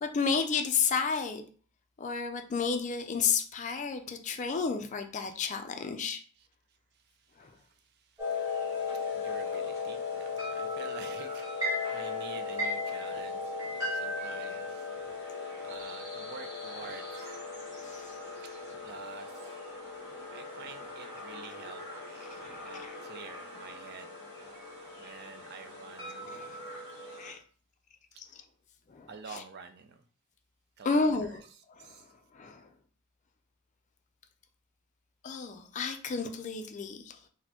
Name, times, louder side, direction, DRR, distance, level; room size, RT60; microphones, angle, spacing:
voice 1, 0.0-1.4 2.0-6.2 7.4-7.5 17.8-18.1 22.3-22.9 26.2-26.6 27.2-27.4 28.2-28.4 28.9-29.4 30.8-31.4 31.7-32.0 32.3-32.7 35.2-37.2, left 5 dB, 35° left, 0.3 m, -32 dB
voice 2, 8.0-14.9 15.6-17.4 18.8-19.5 20.1-21.8 22.1-24.1 25.0-26.7 29.1-30.0 30.8-32.1, right 5 dB, 45° right, 0.4 m, -49 dB
sound 1, 8.2-27.3, left 3 dB, 15° right, 1.2 m, -37 dB
4.1 x 2.1 x 2.9 m
head